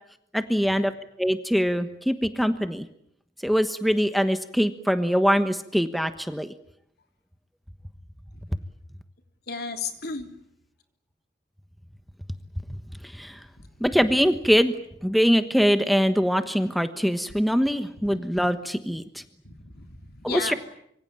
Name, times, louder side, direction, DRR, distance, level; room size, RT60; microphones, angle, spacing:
voice 1, 0.3-0.9 1.2-2.8 3.4-6.5 13.1-13.4 13.8-14.7 15.0-19.2 20.2-20.5, equal, ahead, 9 dB, 1.3 m, -23 dB
voice 2, 9.5-10.3 19.5-20.6, left 4 dB, 65° left, 6 dB, 3.6 m, -33 dB
25.5 x 24.0 x 8.9 m, 0.74 s
head